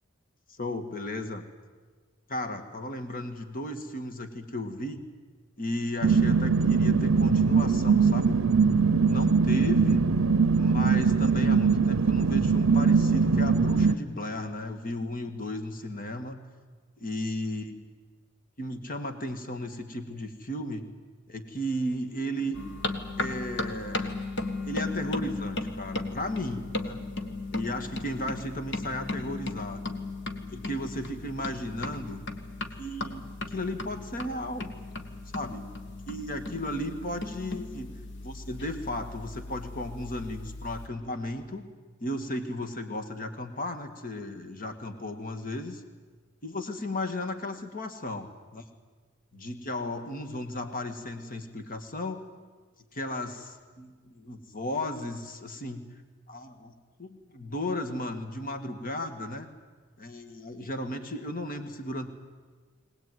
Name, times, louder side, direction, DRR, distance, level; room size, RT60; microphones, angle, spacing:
voice 1, 0.6-1.4 2.3-5.0 5.6-8.4 9.0-10.1 10.5-16.4 17.0-17.7 18.6-20.9 21.3-22.6 23.2-24.1 24.6-27.0 27.5-29.9 30.5-32.2 32.8-34.7 35.3-35.7 36.1-37.9 38.2-41.7 42.0-45.8 46.4-48.6 49.3-52.2 52.9-55.8 56.3-56.7 57.0-59.5 60.0-62.1, left 1 dB, 45° left, 8 dB, 1.8 m, -35 dB
sound 1, 6.0-14.0, right 5 dB, 70° right, 0.6 m, -22 dB
sound 2, 22.5-40.9, left 2 dB, 60° left, 1.7 m, -36 dB
22.5 x 19.0 x 9.4 m, 1.4 s
head